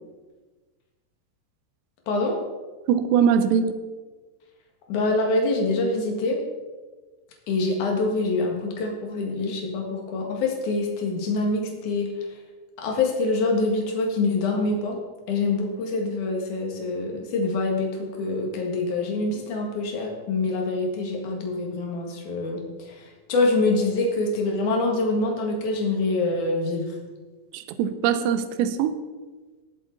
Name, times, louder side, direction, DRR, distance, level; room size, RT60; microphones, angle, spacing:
voice 1, 2.1-2.4 4.9-6.4 7.5-12.3 12.8-15.0 15.3-27.0, left 3 dB, 55° left, 1 dB, 2.7 m, -25 dB
voice 2, 2.9-3.7 27.5-29.0, right 8 dB, 80° right, 10 dB, 2.7 m, -22 dB
19.0 x 7.6 x 4.0 m, 1.3 s
omnidirectional pair, 5.3 m